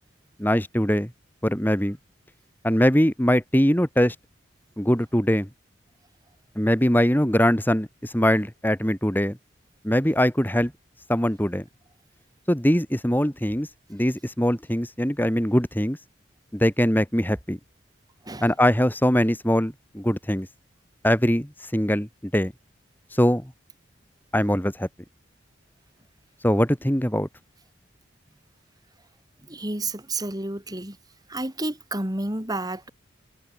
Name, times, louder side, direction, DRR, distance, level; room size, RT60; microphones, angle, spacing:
voice 1, 0.4-1.1 1.4-2.0 2.6-4.1 4.8-5.5 6.6-9.4 9.8-10.7 11.1-11.6 12.5-16.0 16.5-17.6 18.4-20.5 21.0-22.5 23.1-23.5 24.3-24.9 26.4-27.3, equal, 10° left, 2.9 m, -22 dB
voice 2, 29.4-31.0 31.3-32.9, right 2 dB, 20° right, 3.7 m, -30 dB
head